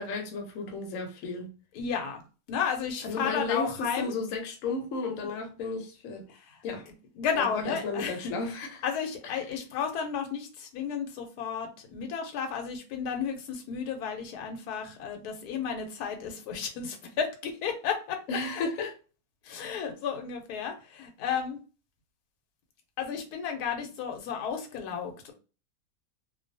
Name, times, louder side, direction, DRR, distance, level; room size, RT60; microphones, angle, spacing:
voice 1, 0.0-1.5 3.0-6.3 6.6-6.8 7.4-8.8 18.3-18.9, left 3 dB, 70° left, 1.0 m, -33 dB
voice 2, 1.7-2.2 2.5-4.1 6.3-8.3 8.8-18.2 19.4-21.6 23.0-25.3, left 7 dB, 90° left, 1.1 m, -33 dB
2.5 x 2.2 x 2.5 m
omnidirectional pair, 1.6 m